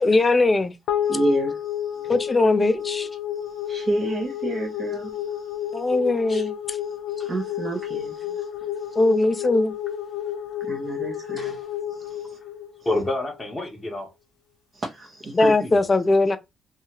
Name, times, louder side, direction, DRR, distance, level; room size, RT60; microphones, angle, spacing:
voice 1, 0.0-0.7 2.1-3.1 5.7-6.8 9.0-9.7 15.4-16.4, left 2 dB, 25° left, 0.4 m, -20 dB
sound 1, 0.9-13.4, left 10 dB, 90° left, 0.4 m, -31 dB
voice 2, 1.0-2.1 3.4-5.7 6.9-8.5 10.6-11.6 11.9-12.4 14.7-15.5, right 2 dB, 45° right, 0.7 m, -30 dB
voice 3, 11.4-11.7 12.8-14.1 15.6-15.7, left 2 dB, 10° left, 0.8 m, -29 dB
2.7 x 2.3 x 2.8 m
cardioid pair, 90°, 0 cm